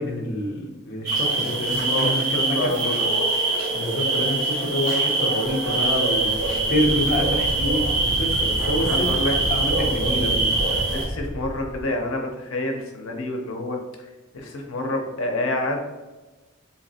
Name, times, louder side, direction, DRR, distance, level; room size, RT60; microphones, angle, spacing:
voice 1, 0.0-3.1 3.7-9.2 9.5-10.5, left 1 dB, 50° left, -1 dB, 0.6 m, -27 dB
sound 1, 1.1-11.1, right 3 dB, 60° right, 1.3 m, -24 dB
voice 2, 1.9-3.1 6.9-7.0 8.8-9.3 10.8-13.8 14.3-15.8, left 1 dB, 90° left, 2 dB, 0.6 m, -28 dB
Wind, 5.4-11.8, right 1 dB, 5° right, 0.6 m, -31 dB
3.9 x 2.8 x 2.7 m, 1.1 s
head